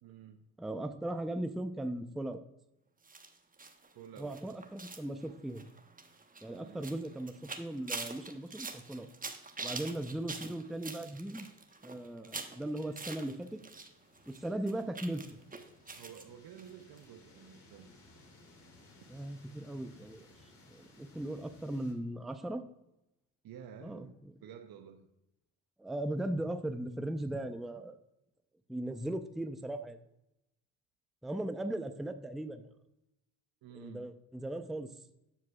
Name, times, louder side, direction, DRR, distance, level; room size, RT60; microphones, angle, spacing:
voice 1, 0.0-0.4 3.9-4.4 6.6-7.1 16.0-17.9 23.4-24.2 24.4-25.1 33.6-34.1, right 9 dB, 50° right, 6 dB, 0.8 m, -51 dB
voice 2, 0.6-2.4 4.2-5.7 6.4-9.1 9.6-11.5 11.8-13.6 14.3-15.2 19.1-20.3 20.7-22.6 23.8-24.1 25.8-28.0 28.7-30.0 31.2-32.6 33.7-34.9, right 1 dB, ahead, 9 dB, 0.5 m, -38 dB
sound 1, 3.0-13.9 14.1-16.2 16.6-16.7 17.0-17.1, right 3 dB, 20° right, 1.1 m, -45 dB
sound 2, 12.4-21.9, left 2 dB, 60° left, 2.9 m, -61 dB
13.5 x 4.8 x 2.3 m, 0.87 s
hypercardioid pair, 60°, 45 cm